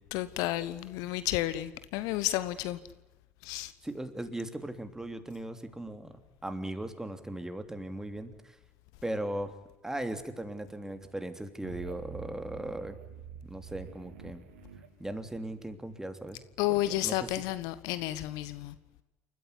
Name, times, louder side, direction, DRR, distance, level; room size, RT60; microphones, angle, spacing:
voice 1, 0.1-2.8 3.4-3.7 16.6-18.7, left 15 dB, 60° left, 1.1 m, -31 dB
voice 2, 3.8-6.1 6.4-8.6 9.0-9.5 9.8-13.0 13.4-14.4 15.0-16.4 17.0-17.4, right 1 dB, 5° right, 3.2 m, -38 dB
sound 1, 11.6-15.8, right 8 dB, 75° right, 3.0 m, -47 dB
29.0 x 14.5 x 9.9 m
figure-of-eight pair, 65°, 7 cm